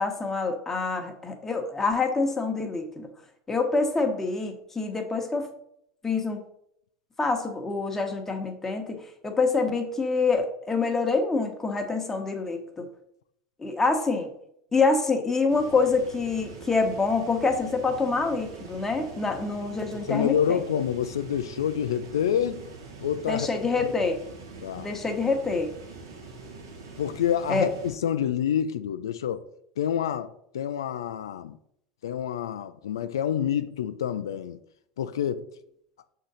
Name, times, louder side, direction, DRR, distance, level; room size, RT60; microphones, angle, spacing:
voice 1, 0.0-3.1 3.5-5.5 6.0-6.4 7.2-12.9 13.6-14.3 14.7-20.6 23.3-24.2 24.8-25.7 27.5-27.7, left 4 dB, 15° left, 1.2 m, -26 dB
sound 1, 15.5-27.9, right 4 dB, 90° right, 1.5 m, -44 dB
voice 2, 20.0-22.6 23.0-23.5 23.8-23.9 24.6-24.9 27.0-29.4 29.8-31.6 32.0-34.6 35.0-35.5, left 9 dB, 90° left, 0.3 m, -27 dB
6.2 x 3.8 x 4.1 m
hypercardioid pair, 100°, 2 cm